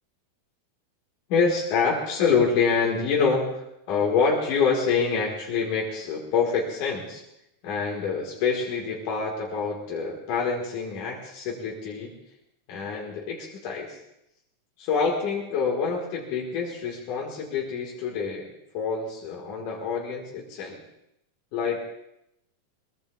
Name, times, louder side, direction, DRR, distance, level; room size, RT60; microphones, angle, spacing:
voice 1, 1.3-7.2 7.6-12.1 12.7-14.0 14.8-18.5 18.7-20.8 21.5-21.8, left 5 dB, 80° left, -3 dB, 3.3 m, -26 dB
22.5 x 22.0 x 2.4 m, 0.82 s
omnidirectional pair, 3.5 m